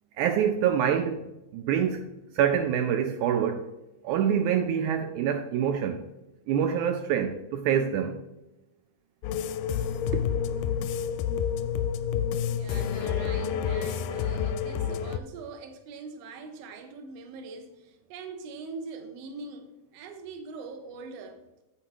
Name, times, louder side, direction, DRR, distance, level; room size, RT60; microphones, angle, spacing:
voice 1, 0.2-1.3 1.5-2.1 2.4-3.7 4.0-6.0 6.5-8.2 10.1-10.3, right 8 dB, 85° right, 1.7 m, -26 dB
sound 1, 9.2-15.2, left 8 dB, 85° left, 2.3 m, -29 dB
voice 2, 12.5-21.4, right 4 dB, 70° right, 1.6 m, -42 dB
8.5 x 7.7 x 3.1 m
omnidirectional pair, 4.0 m